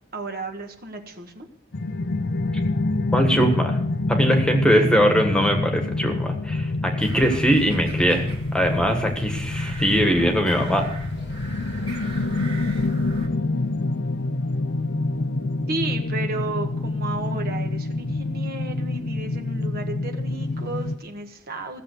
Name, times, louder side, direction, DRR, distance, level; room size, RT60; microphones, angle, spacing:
voice 1, 0.1-1.5 15.7-21.8, right 2 dB, 50° right, 4 dB, 1.4 m, -33 dB
sound 1, 1.7-21.0, left 2 dB, 55° left, 0.7 m, -27 dB
voice 2, 3.1-3.8 4.1-8.3 8.5-10.9, equal, 5° left, 4 dB, 1.6 m, -21 dB
sound 2, 7.0-13.3, right 2 dB, 25° right, 2.2 m, -39 dB
16.0 x 7.4 x 6.6 m, 0.69 s
head